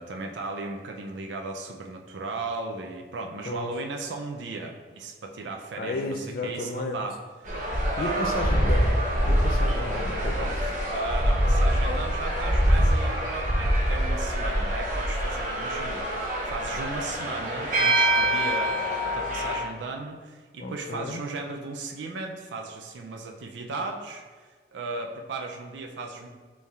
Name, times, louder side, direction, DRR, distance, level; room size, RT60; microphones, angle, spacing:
voice 1, 0.0-7.2 8.0-8.7 10.3-10.5 10.9-26.3, right 3 dB, 85° right, 2 dB, 0.4 m, -36 dB
voice 2, 5.8-7.0 8.0-8.9 9.2-10.7 20.6-21.2, left 2 dB, 50° left, 3 dB, 0.3 m, -33 dB
sound 1, 7.5-19.6, equal, 45° right, 0.8 m, -25 dB
5.2 x 3.3 x 2.4 m, 1.4 s
head